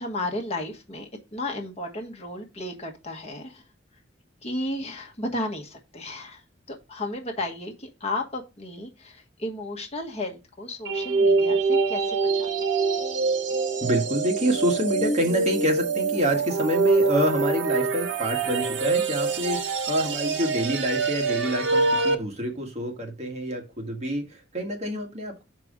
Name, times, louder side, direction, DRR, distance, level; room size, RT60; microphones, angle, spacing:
voice 1, 0.0-3.6 4.4-6.4 6.7-12.5, left 1 dB, 35° left, 2 dB, 1.3 m, -33 dB
sound 1, 10.9-22.2, right 4 dB, 70° right, 1.1 m, -25 dB
voice 2, 13.8-25.4, equal, 35° right, 1 dB, 1.7 m, -27 dB
5.8 x 4.7 x 5.0 m, 0.26 s
head